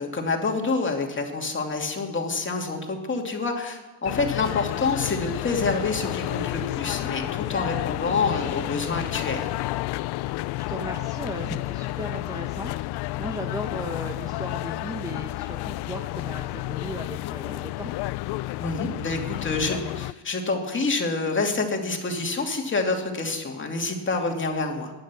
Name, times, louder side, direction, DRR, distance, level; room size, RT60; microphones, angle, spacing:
voice 1, 0.0-9.5 18.6-24.9, left 3 dB, 25° left, 2 dB, 2.5 m, -27 dB
sound 1, 4.0-20.1, left 19 dB, 65° left, 0.5 m, -31 dB
voice 2, 10.3-17.9, right 1 dB, 10° right, 2 dB, 1.3 m, -36 dB
19.0 x 10.5 x 6.2 m, 1.2 s
cardioid pair, 110°, 44 cm